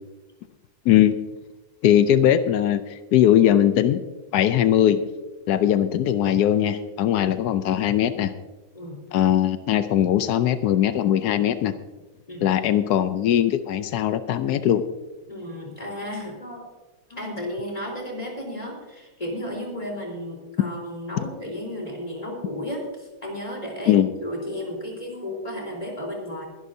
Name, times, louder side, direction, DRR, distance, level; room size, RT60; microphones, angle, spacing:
voice 1, 1.8-4.0 4.3-5.0 5.5-8.3 9.1-11.7 12.4-14.8 23.9-24.1, left 11 dB, 85° left, 11 dB, 0.8 m, -20 dB
voice 2, 15.3-16.7 17.1-26.5, left 1 dB, 15° left, -1 dB, 3.8 m, -33 dB
22.5 x 11.0 x 2.7 m, 1.1 s
omnidirectional pair, 2.4 m